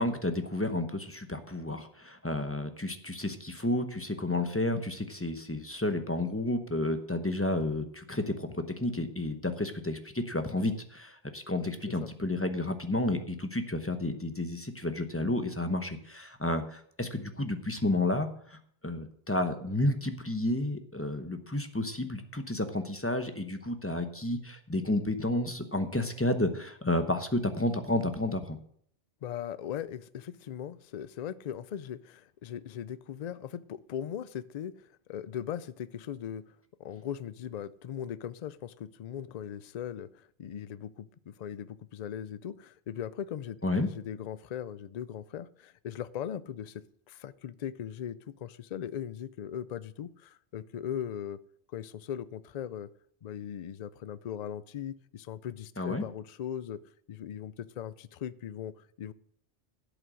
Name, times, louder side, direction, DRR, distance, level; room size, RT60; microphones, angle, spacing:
voice 1, 0.0-28.6 43.6-43.9 55.8-56.0, left 1 dB, 15° left, 8 dB, 0.8 m, -31 dB
voice 2, 29.2-36.4 36.8-51.4 51.7-52.9 53.2-56.8 57.1-59.1, left 9 dB, 55° left, 17 dB, 0.4 m, -39 dB
11.5 x 8.3 x 6.2 m, 0.65 s
omnidirectional pair, 1.2 m